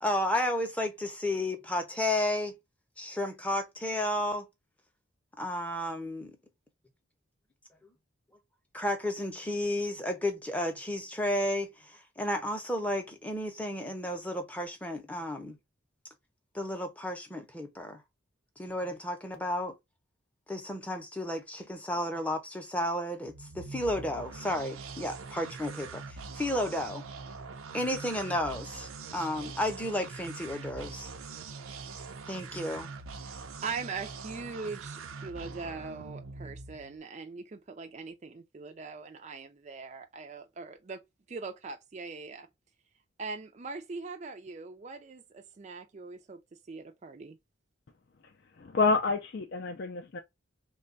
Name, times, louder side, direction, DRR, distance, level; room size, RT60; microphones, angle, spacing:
voice 1, 0.0-2.5 3.0-4.5 5.4-6.3 8.7-15.6 16.5-18.0 18.6-19.7 20.5-27.0 27.7-31.1 32.3-32.9, left 1 dB, 5° left, 0.6 m, -32 dB
sound 1, 23.2-37.0, right 4 dB, 80° right, 0.5 m, -43 dB
voice 2, 33.2-41.0 41.3-42.5 43.2-46.4 46.7-47.4, right 4 dB, 35° right, 0.4 m, -41 dB
voice 3, 48.6-50.2, left 4 dB, 55° left, 0.4 m, -28 dB
3.2 x 2.3 x 3.7 m
head